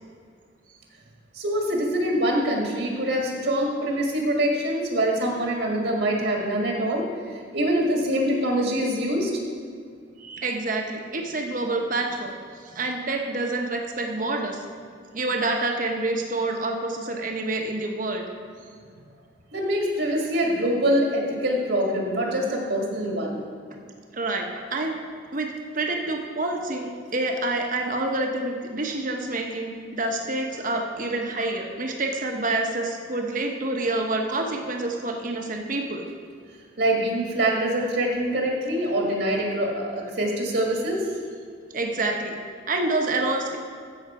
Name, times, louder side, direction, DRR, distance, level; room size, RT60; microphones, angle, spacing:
voice 1, 1.3-7.0 7.5-9.3 19.5-23.4 36.8-41.0, right 1 dB, 65° right, 0 dB, 1.8 m, -24 dB
voice 2, 10.2-12.3 12.6-14.6 15.1-18.2 24.1-25.0 25.3-36.0 41.7-42.4 42.7-43.6, right 2 dB, 45° right, 3 dB, 1.1 m, -27 dB
15.0 x 6.4 x 4.9 m, 2.2 s
head